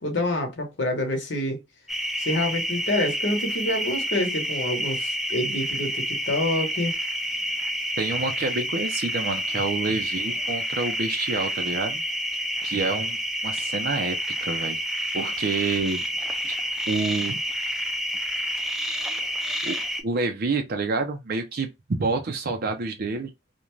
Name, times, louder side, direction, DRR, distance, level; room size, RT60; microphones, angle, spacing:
voice 1, 0.0-1.6 2.2-6.9, left 1 dB, 70° left, 0.9 m, -27 dB
sound 1, 1.9-20.0, equal, ahead, 0.4 m, -29 dB
voice 2, 8.0-12.0 12.6-13.2 13.4-14.8 15.1-16.0 16.5-17.4 19.6-19.8 20.0-23.3, right 3 dB, 55° right, 0.5 m, -28 dB
2.5 x 2.2 x 3.0 m
head